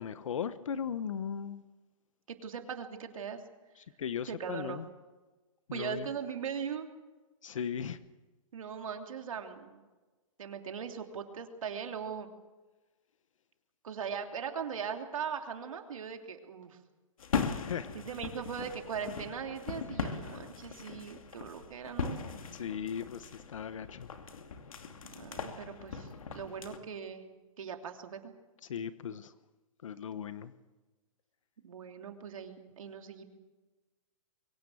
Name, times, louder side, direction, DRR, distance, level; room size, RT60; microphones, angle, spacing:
voice 1, 0.0-1.6 3.8-4.9 5.7-6.1 7.4-8.0 17.6-17.9 22.5-24.1 28.6-29.3 29.8-30.5, left 7 dB, 70° left, 13 dB, 1.1 m, -37 dB
voice 2, 2.3-3.4 4.3-4.8 5.7-6.8 8.5-9.8 10.4-12.3 13.8-16.8 17.9-22.4 24.9-27.3 27.6-28.3 31.6-33.2, right 7 dB, 75° right, 4 dB, 3.0 m, -40 dB
sound 1, 17.2-26.8, left 6 dB, 85° left, 2.6 m, -39 dB
23.0 x 17.0 x 7.8 m, 1.2 s
hypercardioid pair, 175°, 17 cm